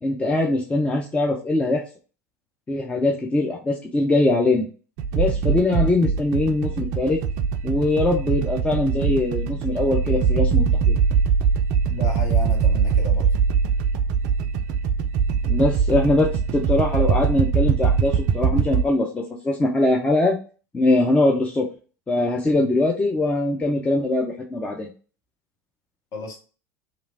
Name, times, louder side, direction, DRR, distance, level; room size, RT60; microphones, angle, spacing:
voice 1, 0.0-1.8 2.7-4.7 5.1-7.2 7.6-10.9 15.5-20.4 20.7-21.7 22.1-24.9, left 2 dB, 15° left, 0 dB, 0.5 m, -22 dB
sound 1, 5.0-18.8, right 6 dB, 50° right, 0.4 m, -22 dB
voice 2, 11.9-13.3 26.1-26.4, left 3 dB, 40° left, 1 dB, 1.1 m, -33 dB
3.1 x 2.4 x 2.5 m, 0.36 s
figure-of-eight pair, 75°, 9 cm